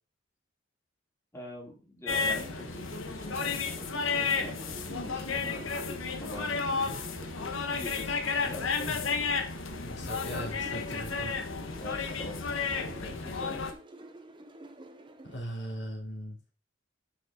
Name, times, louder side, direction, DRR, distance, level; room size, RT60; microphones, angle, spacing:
voice 1, 1.3-5.7 6.2-6.9 7.7-9.1 11.7-13.6, left 1 dB, 15° left, -4 dB, 3.2 m, -44 dB
sound 1, 2.1-13.7, left 4 dB, 80° left, 1.3 m, -32 dB
sound 2, 2.1-15.4, right 1 dB, 25° right, 0.9 m, -49 dB
voice 2, 9.8-11.3 15.2-16.4, equal, 60° left, -1 dB, 3.3 m, -39 dB
10.5 x 5.6 x 3.7 m, 0.33 s
head